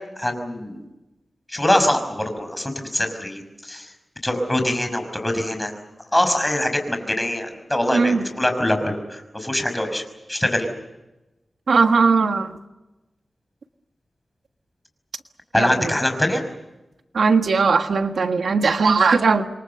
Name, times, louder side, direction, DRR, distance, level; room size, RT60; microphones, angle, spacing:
voice 1, 0.2-0.8 1.5-3.9 4.2-5.7 6.1-10.0 10.3-10.7 15.5-16.4, left 1 dB, 15° left, 6 dB, 5.6 m, -23 dB
voice 2, 7.9-8.2 11.7-12.6 15.5-15.9 17.1-19.5, right 4 dB, 80° right, 6 dB, 1.5 m, -19 dB
28.0 x 23.5 x 7.0 m, 1.0 s
wide cardioid pair, 100°, 0 cm